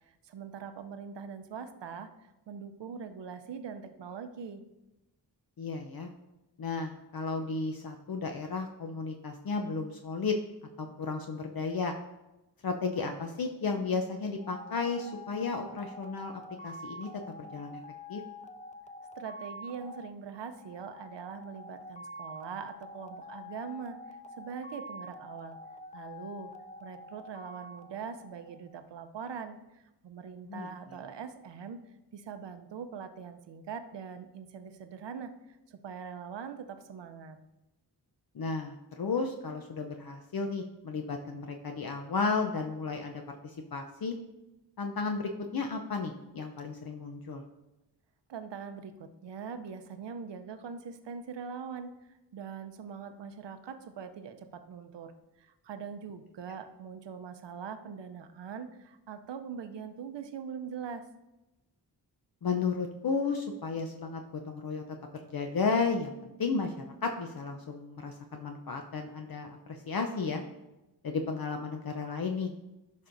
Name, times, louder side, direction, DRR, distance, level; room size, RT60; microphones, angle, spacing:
voice 1, 0.2-4.6 19.2-25.6 25.9-26.5 26.8-31.8 32.1-37.4 48.3-55.1 55.4-61.0, right 6 dB, 80° right, 9 dB, 0.7 m, -42 dB
voice 2, 5.6-6.1 6.6-10.3 10.8-11.9 12.6-16.3 16.6-17.1 17.4-17.8 18.1-18.2 30.5-30.7 38.3-44.1 44.8-47.4 62.4-64.8 65.3-70.4 71.0-72.5, left 4 dB, 55° left, 3 dB, 0.7 m, -33 dB
sound 1, 14.4-28.8, left 1 dB, 20° left, 0.3 m, -47 dB
10.5 x 5.4 x 2.6 m, 0.99 s
cardioid pair, 50°, 42 cm